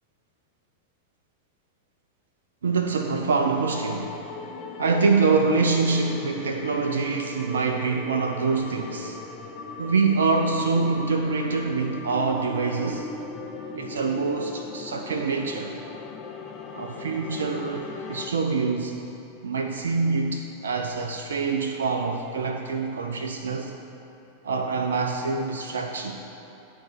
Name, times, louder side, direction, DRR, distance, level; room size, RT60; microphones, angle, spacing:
voice 1, 2.6-4.3 4.8-9.2 9.8-13.1 13.7-15.7 16.7-19.0 19.4-23.7 24.4-26.2, right 4 dB, 65° right, 4 dB, 0.4 m, -25 dB
sound 1, 3.7-18.3, left 4 dB, 30° left, 0.6 m, -38 dB
10.5 x 4.0 x 5.2 m, 2.9 s
figure-of-eight pair, 90°, 0 cm